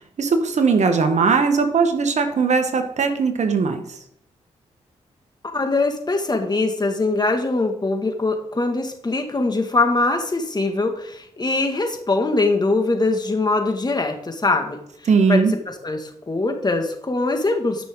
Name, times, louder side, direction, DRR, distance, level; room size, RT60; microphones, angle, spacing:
voice 1, 0.2-3.8 15.1-15.5, right 5 dB, 60° right, 6 dB, 1.5 m, -19 dB
voice 2, 5.5-14.8 15.3-17.9, left 3 dB, 30° left, 4 dB, 2.1 m, -22 dB
13.0 x 6.1 x 3.9 m, 0.70 s
supercardioid pair, 50°, 13 cm